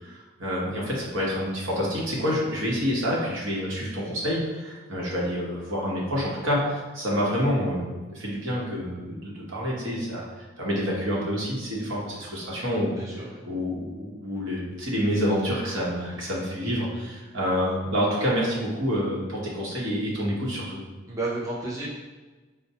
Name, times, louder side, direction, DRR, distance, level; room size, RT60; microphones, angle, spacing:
voice 1, 0.0-10.2 10.6-13.0 13.5-20.8, equal, 70° right, -5 dB, 0.9 m, -28 dB
voice 2, 13.0-13.4 21.1-21.9, right 2 dB, 15° right, -7 dB, 0.4 m, -32 dB
4.3 x 2.1 x 2.7 m, 1.3 s
head